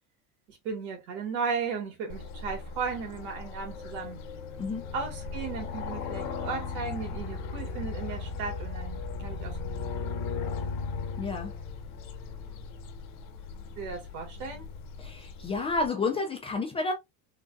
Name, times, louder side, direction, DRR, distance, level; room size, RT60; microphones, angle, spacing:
voice 1, 0.5-4.2 4.9-9.6 13.8-14.7, right 5 dB, 85° right, 1.9 m, -35 dB
sound 1, 2.1-15.9, left 4 dB, 75° left, 1.2 m, -37 dB
Wind, 3.2-6.8 7.3-8.6 9.1-9.2, left 5 dB, 50° left, 0.8 m, -50 dB
voice 2, 11.2-11.5 15.0-16.9, left 3 dB, 15° left, 0.3 m, -30 dB
3.9 x 2.3 x 2.4 m
cardioid pair, 145°, 43 cm